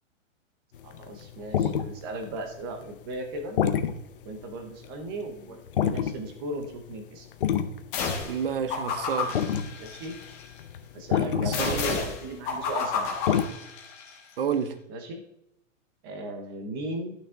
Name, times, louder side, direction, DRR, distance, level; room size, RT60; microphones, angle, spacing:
sound 1, 0.7-4.9 5.2-5.3 5.7-6.3 6.6-7.0 7.3-12.6 12.8-13.4, left 8 dB, 45° left, 0.7 m, -28 dB
voice 1, 0.8-3.6 4.2-7.3 9.8-10.2 10.9-13.1 14.9-15.2 16.0-17.1, right 2 dB, 20° right, 0.9 m, -36 dB
sound 2, 7.9-8.4 8.7-10.4 11.5-14.1, left 5 dB, 15° left, 1.3 m, -31 dB
voice 2, 8.2-9.4 11.3-11.8 14.4-14.8, right 7 dB, 45° right, 0.7 m, -29 dB
12.0 x 6.1 x 3.7 m
hypercardioid pair, 175°, 39 cm